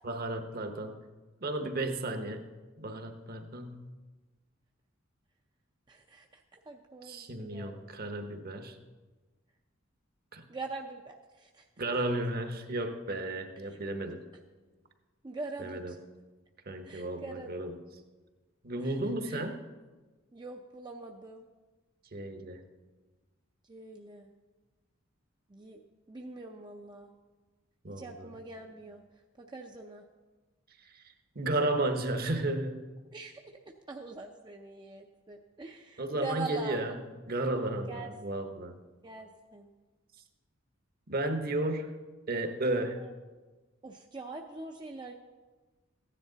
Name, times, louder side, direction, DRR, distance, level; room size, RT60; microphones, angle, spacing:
voice 1, 0.0-1.0 1.4-2.5 2.8-3.8 7.0-8.8 10.3-10.4 11.8-14.2 15.6-15.9 16.7-17.8 18.6-19.6 22.1-22.6 27.8-28.3 30.8-31.0 31.3-32.8 36.0-37.0 37.3-38.8 41.1-41.9 42.3-43.0, right 2 dB, 50° right, 7 dB, 1.0 m, -33 dB
voice 2, 5.9-7.8 10.5-11.7 13.7-13.8 15.2-16.0 16.8-17.5 18.8-19.0 19.2-19.4 20.3-21.5 23.7-24.3 25.5-25.8 26.1-27.1 27.9-29.0 29.4-30.1 33.1-33.4 33.9-36.8 37.9-38.1 39.0-39.7 43.0-43.1 43.8-45.1, right 3 dB, 20° right, 2 dB, 0.5 m, -43 dB
15.0 x 10.0 x 3.9 m, 1.3 s
head